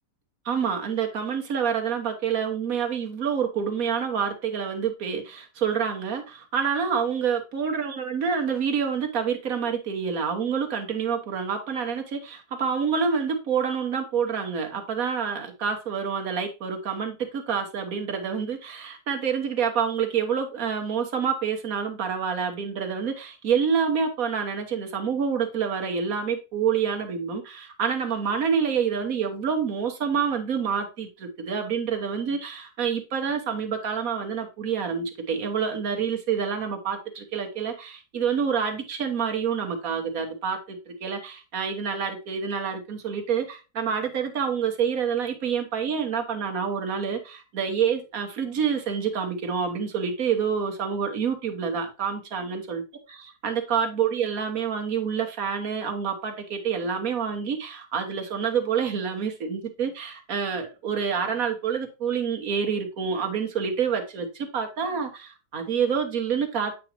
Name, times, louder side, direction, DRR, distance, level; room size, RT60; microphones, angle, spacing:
voice 1, 0.4-52.8 53.4-66.8, right 6 dB, 55° right, 1.5 m, -27 dB
8.5 x 5.0 x 3.0 m
omnidirectional pair, 1.9 m